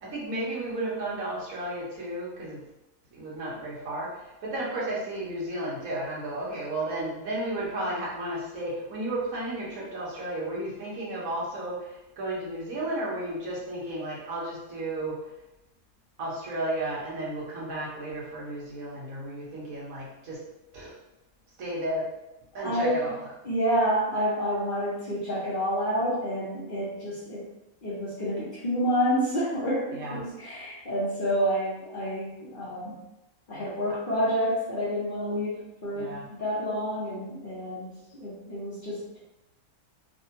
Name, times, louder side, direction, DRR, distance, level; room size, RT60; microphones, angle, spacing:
voice 1, 0.0-2.6 3.1-15.2 16.2-20.4 20.7-20.9 21.6-22.1 22.5-23.3 29.9-30.3 35.9-36.2, right 1 dB, 75° right, -6 dB, 1.4 m, -33 dB
voice 2, 22.5-23.0 23.4-27.5 27.8-33.0 33.5-39.1, equal, 45° left, -7 dB, 0.8 m, -29 dB
3.4 x 2.2 x 2.7 m, 0.95 s
omnidirectional pair, 1.5 m